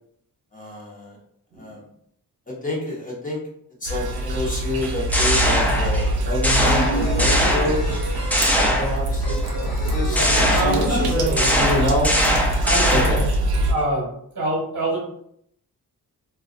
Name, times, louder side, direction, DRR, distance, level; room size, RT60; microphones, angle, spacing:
voice 1, 0.5-1.2 1.6-1.8 2.6-3.4 3.8-8.0 8.8-12.1 12.9-13.3, left 1 dB, 25° left, -4 dB, 0.8 m, -27 dB
sound 1, 3.9-13.7, right 1 dB, 90° right, 0.5 m, -24 dB
sound 2, 4.8-6.1 6.4-8.0 8.3-9.3 10.1-13.3, equal, 5° left, 0.3 m, -21 dB
sound 3, 6.1-11.8 12.0-12.1 12.4-13.2, equal, 85° left, 0.7 m, -30 dB
voice 2, 10.5-11.4 12.6-13.2 13.7-14.1 14.3-15.0, right 1 dB, 50° right, -4 dB, 0.9 m, -25 dB
2.3 x 2.2 x 2.4 m, 0.69 s
wide cardioid pair, 115°, 36 cm